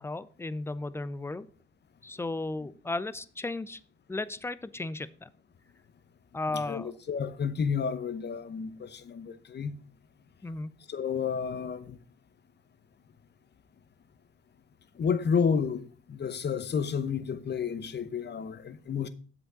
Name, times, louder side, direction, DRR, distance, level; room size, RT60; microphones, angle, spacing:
voice 1, 0.0-1.5 2.0-3.8 4.1-5.3 6.3-6.9 10.4-10.8, left 2 dB, 5° left, 0.4 m, -35 dB
voice 2, 6.5-9.8 10.9-12.0 14.9-19.1, left 6 dB, 30° left, 0.8 m, -31 dB
8.2 x 7.4 x 4.0 m
hypercardioid pair, 65°, 35 cm